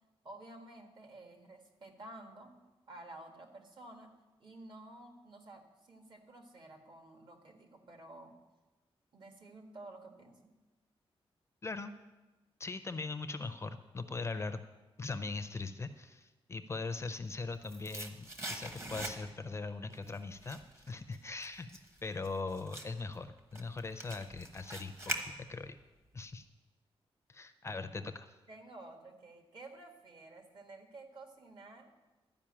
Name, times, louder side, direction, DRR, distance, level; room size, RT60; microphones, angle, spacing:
voice 1, 0.2-2.5 2.9-4.1 4.4-8.3 9.1-10.5 28.5-31.9, right 2 dB, 50° right, 3 dB, 1.6 m, -52 dB
voice 2, 12.6-14.6 15.0-21.7 22.0-25.8 26.1-26.4 27.3-28.3, left 3 dB, 25° left, 9 dB, 0.5 m, -40 dB
sound 1, 17.1-19.6 19.9-25.8 26.1-26.2, right 1 dB, 25° right, 1.1 m, -43 dB
12.5 x 5.2 x 8.7 m, 1.1 s
wide cardioid pair, 150°, 10 cm